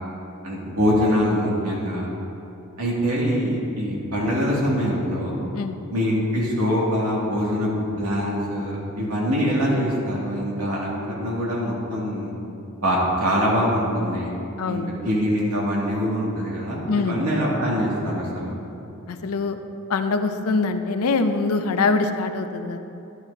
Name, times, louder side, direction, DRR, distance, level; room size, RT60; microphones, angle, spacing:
voice 1, 0.4-2.1 2.8-5.4 5.9-7.7 8.0-12.3 12.8-14.3 14.7-18.6, equal, 85° right, -5 dB, 2.4 m, -24 dB
voice 2, 14.6-14.9 16.9-17.3 19.1-19.6 19.9-22.8, left 4 dB, 75° left, 8 dB, 0.6 m, -23 dB
11.0 x 10.5 x 2.8 m, 2.8 s
head